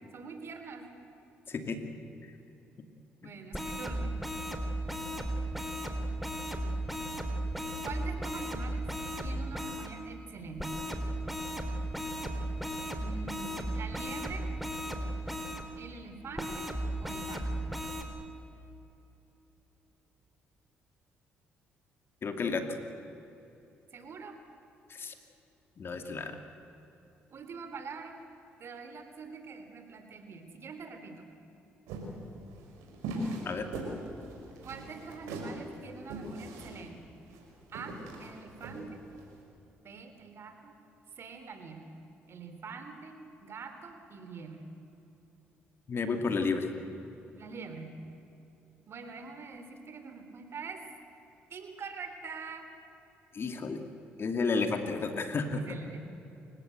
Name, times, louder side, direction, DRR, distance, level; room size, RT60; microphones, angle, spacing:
voice 1, 0.1-0.9 3.2-4.2 7.8-8.9 9.2-10.8 12.9-14.5 15.7-17.5 23.9-24.4 27.3-28.2 28.6-31.2 34.6-37.0 37.7-39.0 39.8-40.7 41.2-41.8 42.3-44.6 47.3-48.0 48.9-50.8 51.5-52.6 55.6-56.1, right 5 dB, 55° right, 7 dB, 3.3 m, -44 dB
voice 2, 1.5-1.9 22.2-22.8 24.9-25.1 25.8-26.4 33.4-33.7 45.9-46.7 53.3-53.8 54.2-55.6, left 4 dB, 50° left, 6 dB, 2.8 m, -32 dB
sound 1, 3.5-9.9 10.6-15.6 16.4-18.0, right 1 dB, ahead, 3.5 m, -35 dB
sound 2, 31.9-39.3, right 1 dB, 85° right, 5.1 m, -40 dB
28.5 x 17.0 x 8.1 m, 3.0 s
supercardioid pair, 60°, 5 cm